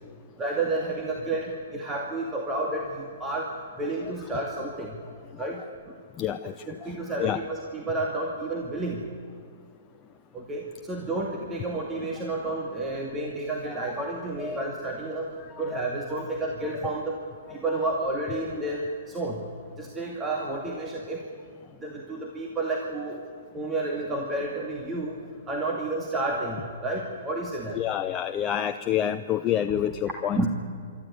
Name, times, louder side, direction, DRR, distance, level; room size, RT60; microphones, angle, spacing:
voice 1, 0.4-5.0 5.4-6.0 6.7-9.1 10.3-17.2 17.5-21.3 21.8-23.2 23.5-27.8 30.4-30.5, right 2 dB, 15° right, -1 dB, 2.3 m, -31 dB
voice 2, 6.2-6.5 6.8-6.9 7.2-7.4 13.7-13.9 14.4-14.7 15.5-15.8 27.7-30.5, left 10 dB, 25° left, 8 dB, 0.6 m, -28 dB
25.0 x 13.0 x 9.6 m, 2.2 s
hypercardioid pair, 125°, 0 cm